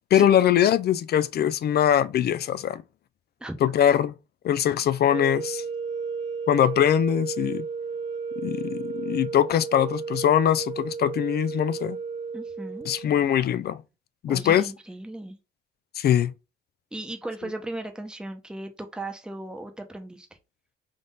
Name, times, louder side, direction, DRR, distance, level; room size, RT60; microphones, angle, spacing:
voice 1, 0.1-2.8 3.6-4.1 4.4-5.6 6.5-7.6 8.4-12.0 12.9-13.8 14.2-14.7 16.0-16.3, left 10 dB, 55° left, 0.4 m, -22 dB
sound 1, 5.0-13.2, right 5 dB, 90° right, 0.8 m, -33 dB
voice 2, 12.3-12.9 14.3-15.4 16.9-20.3, right 1 dB, 5° right, 0.8 m, -36 dB
3.7 x 2.5 x 3.8 m
cardioid pair, 90°, 20 cm